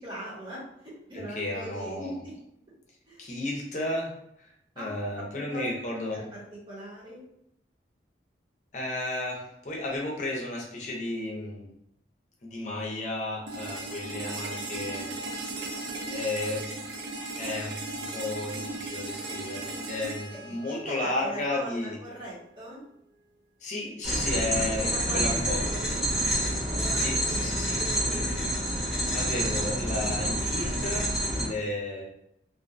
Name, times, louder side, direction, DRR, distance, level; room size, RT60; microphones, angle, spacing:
voice 1, 0.0-2.3 3.1-3.2 4.8-4.9 5.2-5.7 6.1-6.2 6.7-7.2 20.6-22.8 24.5-26.1 26.7-28.3, right 1 dB, 25° right, -7 dB, 0.9 m, -40 dB
voice 2, 1.1-2.2 3.2-4.1 4.4-4.5 4.8-6.2 8.7-11.7 12.4-15.2 15.4-15.7 16.1-16.6 17.4-22.0 23.6-25.6 26.9-27.8 29.1-32.0, left 2 dB, 40° left, -2 dB, 0.6 m, -33 dB
sound 1, 13.5-21.4, right 2 dB, 75° right, 0.4 m, -37 dB
sound 2, 24.0-31.5, right 1 dB, ahead, 0.9 m, -28 dB
2.5 x 2.2 x 2.5 m, 0.76 s
head